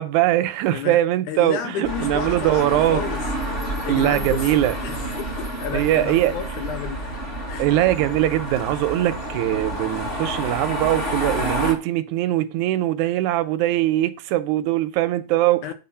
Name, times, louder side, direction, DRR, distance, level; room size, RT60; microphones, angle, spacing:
voice 1, 0.0-3.0 3.9-4.7 5.7-6.3 7.6-15.7, right 14 dB, 80° right, 2.0 m, -21 dB
voice 2, 1.3-3.2 3.8-4.5 4.8-7.0 7.5-7.7 15.6-15.7, left 8 dB, 80° left, 2.3 m, -31 dB
sound 1, 1.8-11.7, right 1 dB, 25° left, 1.5 m, -29 dB
8.6 x 4.3 x 5.6 m
omnidirectional pair, 3.6 m